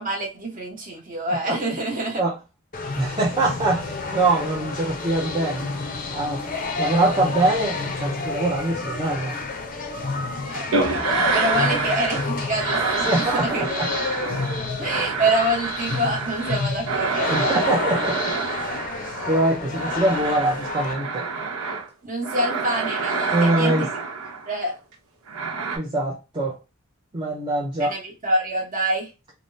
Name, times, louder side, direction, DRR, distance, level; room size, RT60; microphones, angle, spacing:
voice 1, 0.0-2.2 10.5-13.7 14.8-17.5 22.0-23.9 24.5-24.8 27.8-29.1, right 1 dB, 40° right, 1.0 m, -26 dB
sound 1, 2.7-20.9, left 3 dB, 40° left, 0.5 m, -30 dB
voice 2, 3.0-5.6 6.1-6.4 6.8-9.4 13.1-13.9 17.3-18.3 19.3-21.3 23.3-23.9 25.8-26.6 27.1-28.0, right 2 dB, 20° right, 0.5 m, -23 dB
sound 2, 10.7-12.3 12.6-21.9 22.2-24.6 25.3-25.8, right 4 dB, 90° right, 0.8 m, -27 dB
3.3 x 2.0 x 2.6 m
head